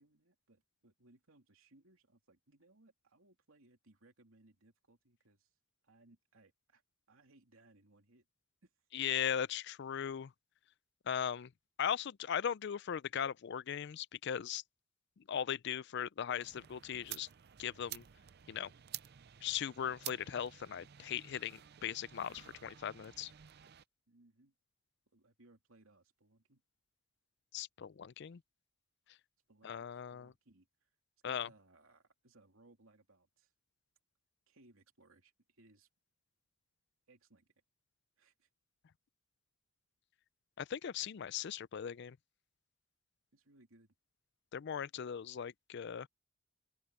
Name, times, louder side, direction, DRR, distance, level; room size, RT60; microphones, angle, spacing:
voice 1, 0.0-5.5 5.8-6.8 7.1-8.2 8.6-8.7 24.1-24.5 25.1-26.6 29.5-30.9 31.2-33.5 34.5-35.9 37.1-37.5 38.2-38.5 43.3-43.9, right 2 dB, 90° right, 2.8 m, -66 dB
voice 2, 8.9-10.3 11.1-11.5 11.8-14.6 15.3-17.3 17.6-18.0 18.5-18.7 19.4-23.3 27.5-28.4 29.6-30.3 31.2-31.5 40.6-42.2 44.5-46.1, left 8 dB, 55° left, 0.4 m, -38 dB
sound 1, 16.4-23.8, right 12 dB, 50° right, 0.5 m, -51 dB
open air
head